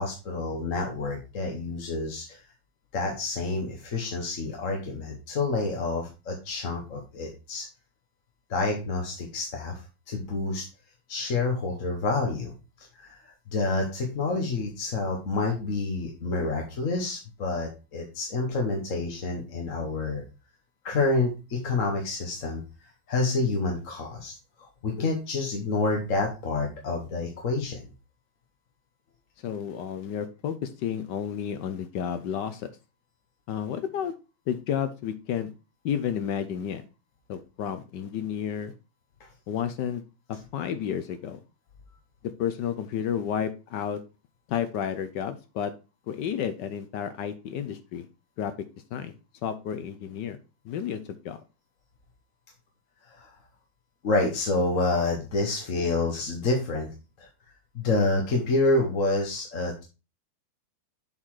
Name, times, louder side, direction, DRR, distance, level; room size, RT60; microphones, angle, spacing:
voice 1, 0.0-2.4 2.9-7.7 8.5-9.8 10.1-10.6 11.1-12.5 12.8-20.2 20.8-22.6 23.1-27.9 53.0-53.3 54.0-57.3 57.7-59.8, left 3 dB, 45° left, 1 dB, 1.3 m, -28 dB
voice 2, 29.4-32.7 33.5-34.1 34.5-35.5 35.8-36.8 37.3-38.7 39.5-40.0 40.3-41.4 42.4-44.0 44.5-45.7 46.1-48.0 48.4-48.5 48.9-49.1 49.4-50.4 50.6-51.4, left 8 dB, 65° left, 11 dB, 1.1 m, -31 dB
7.3 x 4.1 x 4.7 m, 0.30 s
omnidirectional pair, 2.4 m